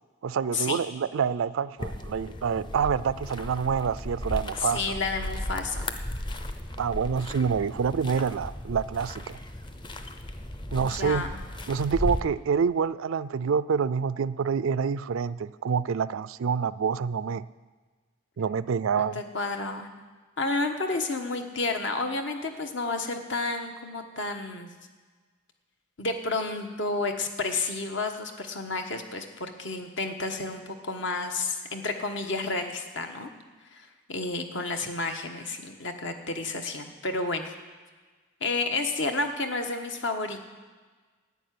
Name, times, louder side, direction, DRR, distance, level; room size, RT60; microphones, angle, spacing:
voice 1, 0.2-5.0 6.8-9.4 10.7-11.2 11.7-17.4 18.4-19.2, right 6 dB, 85° right, 16 dB, 0.4 m, -27 dB
sound 1, 1.8-12.2, left 1 dB, 25° left, 0.6 m, -36 dB
voice 2, 4.6-5.9 10.7-11.4 19.0-19.9 20.4-24.7 26.0-33.3 33.7-37.5 38.4-40.5, left 3 dB, 65° left, 5 dB, 1.3 m, -31 dB
11.0 x 8.5 x 9.4 m, 1.4 s
head